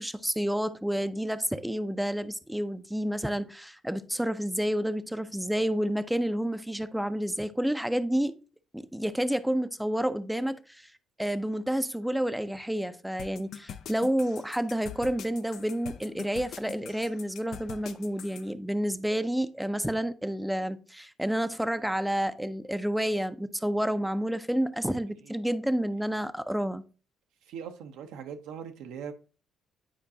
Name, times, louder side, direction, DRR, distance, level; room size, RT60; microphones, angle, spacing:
voice 1, 0.0-8.4 8.7-10.9 11.2-26.8, equal, 5° right, 0.4 m, -29 dB
sound 1, 13.2-18.4, left 8 dB, 70° left, 0.5 m, -43 dB
voice 2, 27.5-29.1, right 7 dB, 80° right, 0.6 m, -40 dB
8.8 x 4.6 x 2.7 m
supercardioid pair, 65°, 0 cm